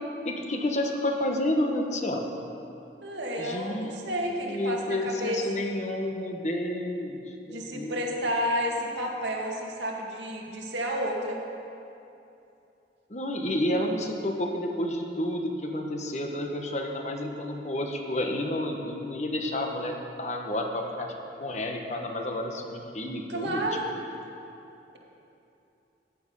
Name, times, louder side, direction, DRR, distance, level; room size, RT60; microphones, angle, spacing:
voice 1, 0.2-2.3 3.4-4.1 4.4-8.1 13.1-21.1 21.4-23.7, left 1 dB, 40° left, 2 dB, 1.1 m, -30 dB
voice 2, 3.0-5.4 7.5-11.4 23.3-23.9, equal, 85° right, -1 dB, 2.0 m, -31 dB
14.5 x 9.7 x 5.4 m, 2.8 s
head